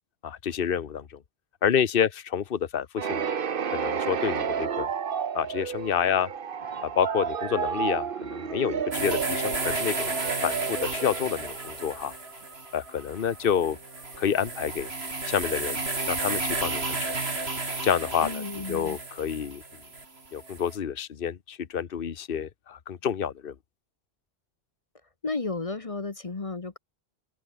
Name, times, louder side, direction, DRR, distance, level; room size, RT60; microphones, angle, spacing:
voice 1, 0.2-1.0 1.6-3.3 3.7-4.9 5.3-6.3 6.8-10.1 10.4-12.1 12.7-13.8 14.2-14.9 15.3-15.8 16.1-17.1 17.8-18.4 18.7-19.6 20.3-23.5, left 8 dB, 60° left, 1.2 m, -28 dB
sound 1, 3.0-11.7, right 7 dB, 60° right, 1.1 m, -31 dB
sound 2, 6.6-15.1, right 1 dB, 30° right, 5.6 m, -52 dB
sound 3, 8.9-20.8, right 3 dB, 90° right, 3.3 m, -32 dB
voice 2, 18.2-19.0 25.2-26.8, left 3 dB, 35° left, 1.1 m, -33 dB
open air
omnidirectional pair, 1.0 m